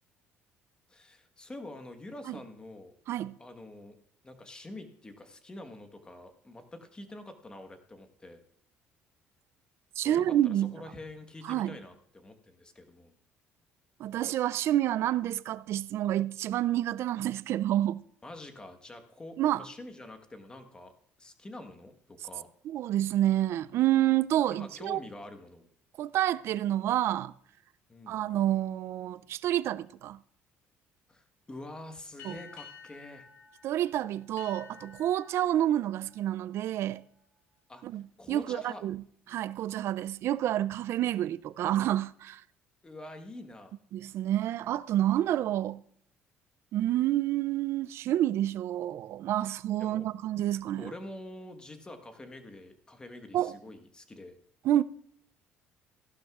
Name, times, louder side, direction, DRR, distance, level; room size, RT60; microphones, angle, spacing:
voice 1, 0.9-2.9 3.4-4.0 4.2-8.4 9.9-13.1 18.2-20.9 21.2-22.5 24.5-25.7 27.9-28.2 31.1-33.3 37.7-38.8 42.8-43.8 49.8-50.1 50.8-54.3, left 1 dB, 15° left, 1.2 m, -46 dB
voice 2, 10.0-10.7 11.5-11.8 14.0-18.0 19.4-19.6 22.7-25.0 26.0-27.3 28.1-30.2 32.2-32.4 33.6-37.0 37.8-38.0 38.3-39.0 39.3-42.4 43.9-45.8 46.7-50.9 53.3-53.5 54.6-54.8, right 12 dB, 60° right, 0.4 m, -28 dB
sound 1, 32.2-37.3, left 6 dB, 80° left, 3.7 m, -52 dB
15.5 x 11.5 x 2.4 m
cardioid pair, 120°, 5 cm